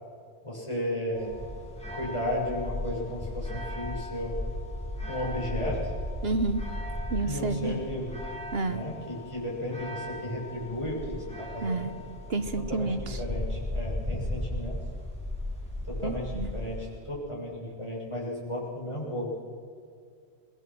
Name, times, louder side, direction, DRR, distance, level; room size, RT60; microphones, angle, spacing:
voice 1, 0.4-1.3 1.9-4.4 5.1-5.9 7.3-8.2 8.6-11.2 11.5-11.9 12.7-14.8 15.8-19.3, equal, 25° left, -5 dB, 7.1 m, -34 dB
sound 1, 1.1-17.0, left 1 dB, 5° left, 6.3 m, -36 dB
voice 2, 6.2-6.6 7.1-7.8 8.5-8.8 11.6-11.9 12.3-13.0 16.0-16.5, right 3 dB, 65° right, 10 dB, 1.4 m, -29 dB
25.5 x 20.5 x 6.2 m, 2.3 s
omnidirectional pair, 1.1 m